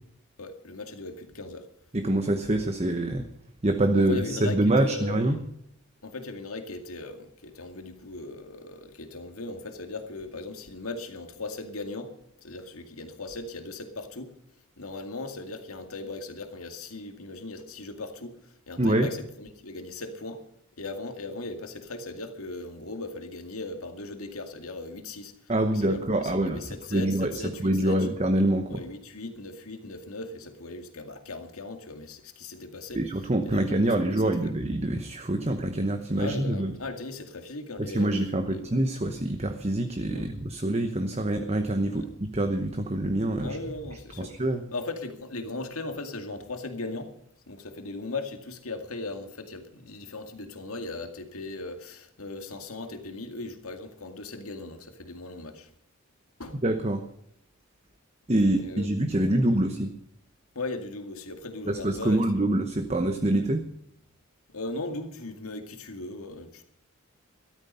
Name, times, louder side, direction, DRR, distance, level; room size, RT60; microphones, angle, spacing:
voice 1, 0.4-1.7 3.9-5.4 6.0-14.3 14.8-20.5 20.8-25.3 25.7-28.1 28.7-33.0 33.4-34.5 36.1-38.6 40.1-40.3 41.9-42.1 43.4-44.4 44.7-47.1 47.5-55.7 56.4-56.6 58.6-58.9 59.4-59.7 60.5-62.5 64.5-66.7, left 2 dB, 85° left, 2.2 m, -38 dB
voice 2, 1.9-3.2 3.6-5.4 18.8-19.1 25.5-27.3 27.6-28.8 32.9-36.7 37.9-43.6 44.2-44.6 56.6-57.0 58.3-59.9 61.7-63.6, right 1 dB, 30° right, 1.0 m, -25 dB
14.0 x 13.0 x 5.6 m
head